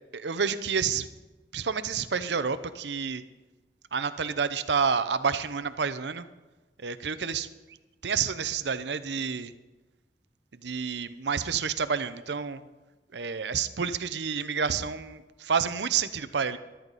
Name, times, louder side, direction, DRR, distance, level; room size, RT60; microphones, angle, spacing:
voice 1, 0.1-1.1 1.5-3.2 3.9-6.3 6.8-7.5 8.0-9.5 10.5-12.6 13.1-16.6, right 6 dB, 85° right, 13 dB, 0.7 m, -29 dB
14.0 x 12.5 x 4.1 m, 1.2 s
head